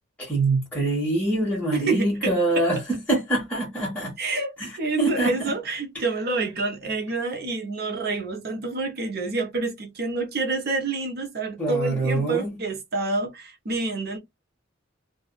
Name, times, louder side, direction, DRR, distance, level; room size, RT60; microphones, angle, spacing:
voice 1, 0.2-2.8 3.1-4.1 4.6-4.7 5.0-5.5 5.9-6.0 11.6-12.6, right 2 dB, 5° left, 1.1 m, -24 dB
voice 2, 1.9-2.7 4.2-4.5 4.8-14.2, right 3 dB, 55° right, 0.8 m, -28 dB
2.5 x 2.4 x 2.2 m
head